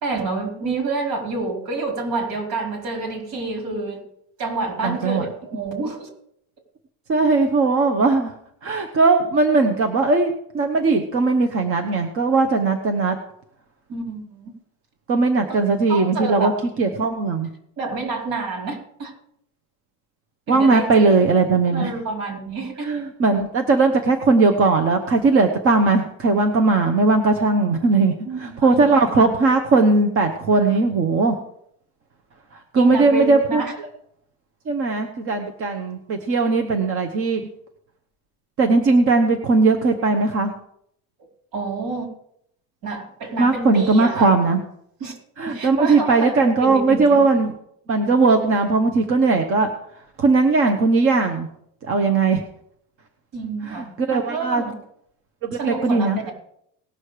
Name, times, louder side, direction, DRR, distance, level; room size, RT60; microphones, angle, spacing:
voice 1, 0.0-4.0 4.4-6.1 13.9-14.5 15.5-15.6 15.9-16.6 17.8-19.1 20.5-21.2 21.7-22.9 28.3-29.3 30.5-30.7 32.7-33.7 41.5-42.1 42.8-44.3 45.0-45.1 45.4-47.2 53.3-54.7 55.6-56.3, right 3 dB, 65° right, 2 dB, 4.3 m, -28 dB
voice 2, 4.8-5.3 7.1-8.3 8.6-13.2 15.1-16.5 16.8-17.5 20.5-21.9 22.8-31.3 32.5-33.6 34.7-37.4 38.6-40.5 43.4-44.6 45.4-47.5 47.9-49.7 50.2-51.5 51.8-52.4 53.6-54.6 55.4-56.2, right 3 dB, 35° right, 5 dB, 1.0 m, -18 dB
19.0 x 6.3 x 4.9 m, 0.71 s
cardioid pair, 160°, 37 cm